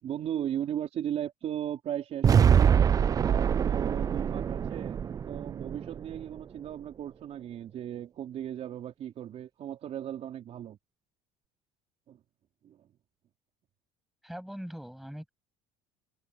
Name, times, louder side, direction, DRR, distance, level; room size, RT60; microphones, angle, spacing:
voice 1, 0.0-10.8 12.1-12.2 12.6-12.9, right 10 dB, 50° right, 3.8 m, -37 dB
sound 1, 2.2-6.4, right 8 dB, 25° right, 0.3 m, -24 dB
voice 2, 14.2-15.3, equal, ahead, 7.4 m, -41 dB
cardioid pair, 125°, 14 cm